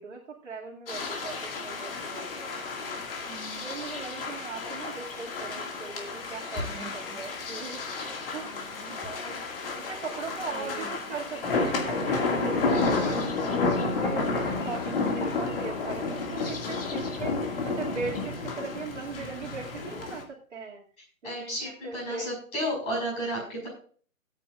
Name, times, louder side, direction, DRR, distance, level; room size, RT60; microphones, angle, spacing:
voice 1, 0.0-2.6 3.6-8.8 9.0-13.5 13.8-20.8 21.2-22.3, right 4 dB, 55° right, -3 dB, 2.5 m, -39 dB
sound 1, 0.9-20.2, left 3 dB, 40° left, 2.3 m, -31 dB
voice 2, 3.3-3.6 6.5-7.5 8.4-9.0 10.5-10.9 21.2-23.7, equal, 15° left, -2 dB, 5.4 m, -34 dB
18.5 x 9.0 x 2.5 m, 0.43 s
hypercardioid pair, 155°, 42 cm